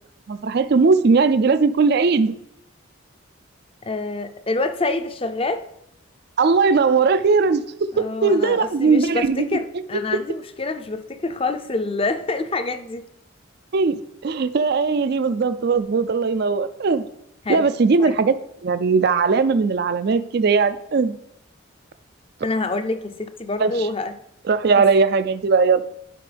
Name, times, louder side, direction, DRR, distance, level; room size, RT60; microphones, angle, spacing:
voice 1, 0.3-2.3 6.4-7.6 8.0-9.6 13.7-17.1 17.5-18.4 18.6-21.2 23.6-23.9 24.5-25.8, right 4 dB, 50° right, 13 dB, 0.4 m, -19 dB
voice 2, 3.8-5.6 7.9-13.0 17.4-17.7 18.0-18.1 22.4-24.1, left 3 dB, 30° left, 9 dB, 0.6 m, -26 dB
11.5 x 5.2 x 3.4 m, 0.81 s
head